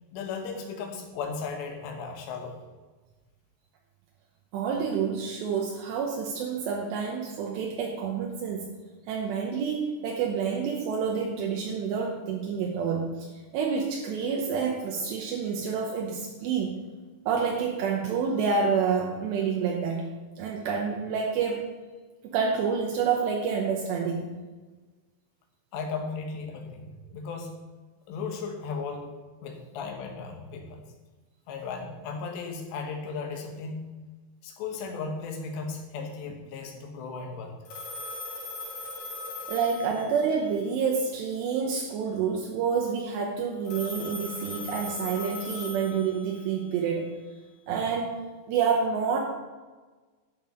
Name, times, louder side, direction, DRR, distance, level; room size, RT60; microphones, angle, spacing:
voice 1, 0.1-2.6 25.7-27.5 28.1-29.1 29.4-30.8 31.5-33.9 34.4-37.5, left 4 dB, 80° left, 2 dB, 3.5 m, -36 dB
voice 2, 4.5-8.7 9.1-13.3 13.5-16.8 17.3-20.1 20.4-21.7 22.3-24.3 39.5-47.1 47.7-49.2, right 6 dB, 80° right, 0 dB, 3.0 m, -28 dB
Telephone, 37.7-40.5 43.7-46.5, left 2 dB, 45° left, 3.2 m, -39 dB
11.0 x 6.1 x 5.1 m, 1.3 s
omnidirectional pair, 5.1 m